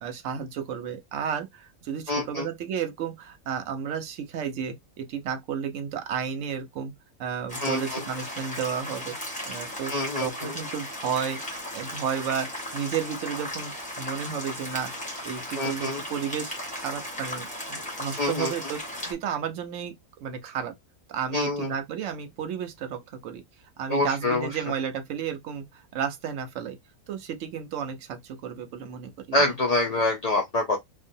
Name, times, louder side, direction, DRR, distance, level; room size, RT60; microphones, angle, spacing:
voice 1, 0.0-6.9 7.2-9.2 9.5-11.4 11.7-14.9 15.2-19.9 20.2-20.7 21.1-23.4 23.8-26.8 27.1-29.6, right 7 dB, 65° right, 0.9 m, -32 dB
voice 2, 2.1-2.5 7.6-8.0 9.9-10.5 15.6-16.0 18.2-18.5 21.3-21.7 23.9-24.5 29.3-30.8, left 2 dB, 45° left, 0.5 m, -26 dB
sound 1, 7.5-19.1, left 1 dB, 5° left, 1.0 m, -36 dB
2.8 x 2.4 x 2.6 m
omnidirectional pair, 1.5 m